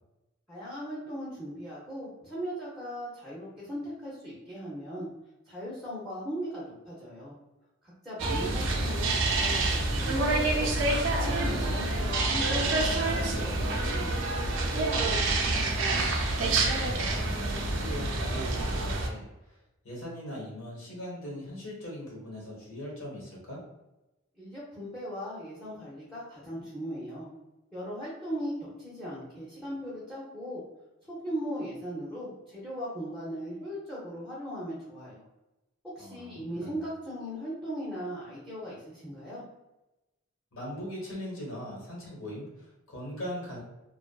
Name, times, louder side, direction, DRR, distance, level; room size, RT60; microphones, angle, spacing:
voice 1, 0.5-5.1 5.5-7.3 8.0-10.7 11.1-14.7 24.4-27.3 27.7-30.6 31.1-35.2 35.8-39.4, equal, ahead, -7 dB, 0.5 m, -38 dB
sound 1, 8.2-19.1, right 2 dB, 60° right, 0.4 m, -27 dB
voice 2, 15.4-19.6 19.8-23.6 36.0-36.8 40.5-43.6, equal, 80° left, -4 dB, 1.0 m, -40 dB
2.6 x 2.3 x 2.2 m, 0.98 s
head